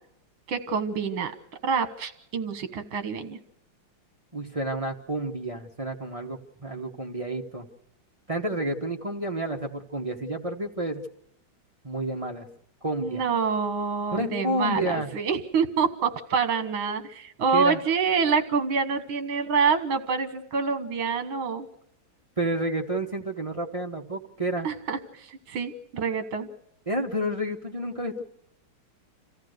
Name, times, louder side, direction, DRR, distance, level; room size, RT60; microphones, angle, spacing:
voice 1, 0.5-1.3 1.6-3.4 13.0-21.7 24.6-26.5, right 5 dB, 70° right, 10 dB, 2.1 m, -26 dB
voice 2, 4.3-7.7 8.3-11.0 11.8-12.5 12.8-13.2 14.1-15.1 17.5-17.8 22.4-24.7 26.9-28.2, right 1 dB, 25° right, 2 dB, 0.8 m, -30 dB
27.0 x 14.5 x 6.5 m, 0.78 s
omnidirectional pair, 2.3 m